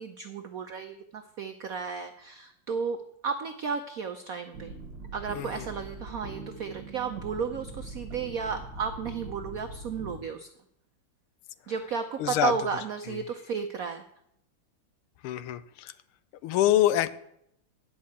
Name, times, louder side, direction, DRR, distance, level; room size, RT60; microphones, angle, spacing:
voice 1, 0.0-4.7 5.1-10.5 11.7-14.0, right 6 dB, 75° right, 7 dB, 0.8 m, -33 dB
sound 1, 4.5-10.2, right 2 dB, 60° right, 1.7 m, -42 dB
voice 2, 5.3-5.7 12.2-12.5 13.1-13.2 15.2-15.9 16.4-17.1, left 13 dB, 85° left, 15 dB, 1.5 m, -25 dB
10.5 x 5.6 x 8.4 m, 0.75 s
omnidirectional pair, 2.3 m